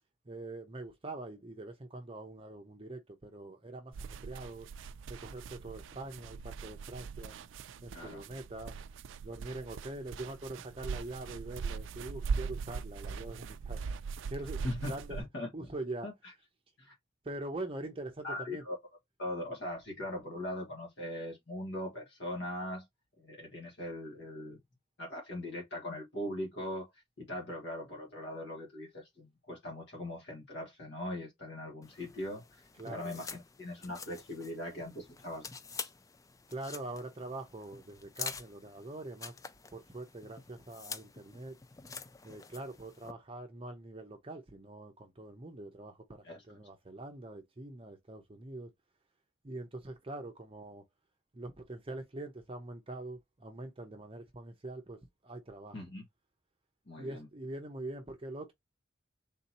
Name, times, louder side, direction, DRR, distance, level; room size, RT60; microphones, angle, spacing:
voice 1, 0.3-4.7 5.1-7.4 7.8-8.8 9.2-13.8 14.3-15.2 15.5-16.1 17.2-18.6 32.8-33.2 36.5-39.3 39.7-41.6 42.2-48.7 49.4-50.8 51.3-55.8 57.0-58.5, right 2 dB, 30° right, 0.6 m, -43 dB
Running on beach sand, 3.9-15.2, right 5 dB, 75° right, 0.4 m, -40 dB
voice 2, 7.9-8.3 14.6-15.5 16.0-16.3 16.8-16.9 18.2-18.8 19.2-22.8 23.2-24.6 25.0-35.4 46.2-46.4 55.7-56.0 56.9-57.3, left 1 dB, 60° left, 1.3 m, -40 dB
sound 1, 31.8-43.1, left 5 dB, 15° left, 0.3 m, -47 dB
3.7 x 2.8 x 4.1 m
head